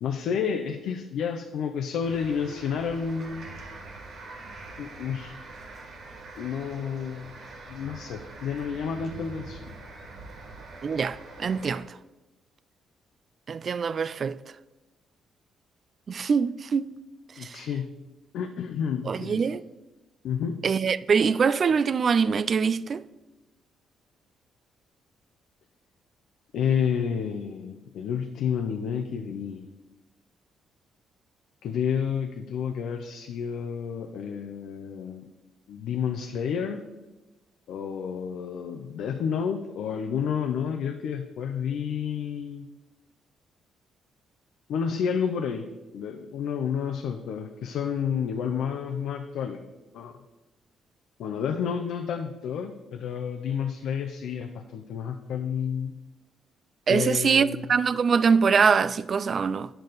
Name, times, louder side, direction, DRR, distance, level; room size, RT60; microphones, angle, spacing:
voice 1, 0.0-3.5 4.8-5.4 6.4-7.3 7.7-9.6 17.4-17.9 18.3-19.5 20.2-20.6 26.5-29.7 31.6-35.3 35.7-36.8 37.7-42.7 44.7-45.7 45.9-49.6 49.9-50.2 51.2-55.9 56.9-57.7, left 7 dB, 80° left, 0.6 m, -30 dB
sound 1, 2.0-11.8, right 2 dB, 65° right, 1.7 m, -44 dB
voice 2, 10.8-11.9 13.5-14.4 16.1-16.9 17.4-17.7 19.1-19.6 20.6-23.0 56.9-59.7, right 6 dB, 45° right, 0.3 m, -23 dB
9.1 x 6.7 x 4.0 m
cardioid pair, 90°, 0 cm